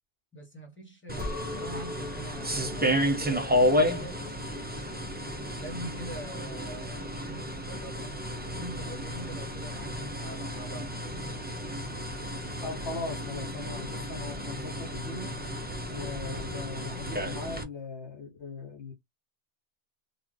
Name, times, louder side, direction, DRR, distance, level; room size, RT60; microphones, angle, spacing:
voice 1, 0.3-4.8 5.4-8.1 8.5-10.9, right 1 dB, 10° left, 1.1 m, -44 dB
sound 1, 1.1-17.6, equal, 15° right, 0.4 m, -32 dB
Chink clink, 1.2-6.4, left 3 dB, 85° left, 1.2 m, -44 dB
voice 2, 12.6-15.4 15.9-18.9, left 3 dB, 60° left, 1.0 m, -39 dB
3.8 x 2.4 x 3.2 m
omnidirectional pair, 1.2 m